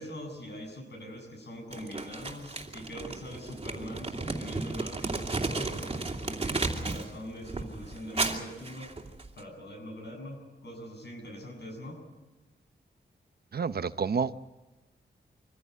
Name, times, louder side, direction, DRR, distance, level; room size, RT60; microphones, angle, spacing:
voice 1, 0.0-8.9 9.4-12.0, equal, 65° left, 3 dB, 7.2 m, -42 dB
Crumpling crinkling, 1.7-7.1 7.4-9.4, right 3 dB, 30° right, 2.7 m, -34 dB
voice 2, 13.5-14.3, right 6 dB, 55° right, 13 dB, 0.8 m, -29 dB
24.5 x 15.5 x 9.4 m, 1.2 s
wide cardioid pair, 115°, 19 cm